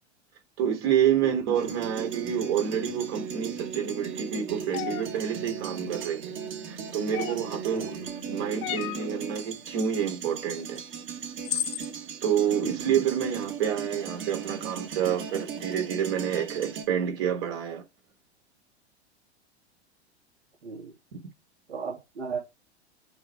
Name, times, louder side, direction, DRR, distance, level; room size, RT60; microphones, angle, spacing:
voice 1, 0.6-6.4 6.7-7.9 8.3-10.8 12.2-17.8, right 9 dB, 55° right, 3.4 m, -28 dB
Guitar loop large DJ, 1.5-16.9, right 7 dB, 35° right, 2.1 m, -37 dB
sound 1, 4.7-5.1 7.1-7.6 8.6-9.1 10.8-10.9 11.4-11.9, left 13 dB, 35° left, 0.9 m, -32 dB
voice 2, 7.7-8.1 12.6-12.7 20.6-20.9 21.7-22.4, right 5 dB, 75° right, 3.0 m, -35 dB
8.8 x 3.6 x 3.7 m
figure-of-eight pair, 95°, 34 cm